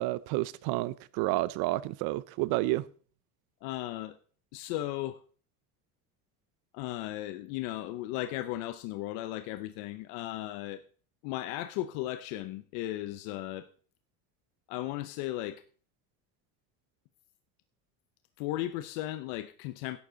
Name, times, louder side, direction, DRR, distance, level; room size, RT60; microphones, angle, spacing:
voice 1, 0.0-2.8, right 18 dB, 80° right, 0.7 m, -30 dB
voice 2, 3.6-4.2 4.5-5.2 6.7-10.8 11.2-13.7 14.7-15.6 18.4-20.0, left 14 dB, 85° left, 0.8 m, -36 dB
12.0 x 9.4 x 3.9 m
cardioid pair, 125°, 37 cm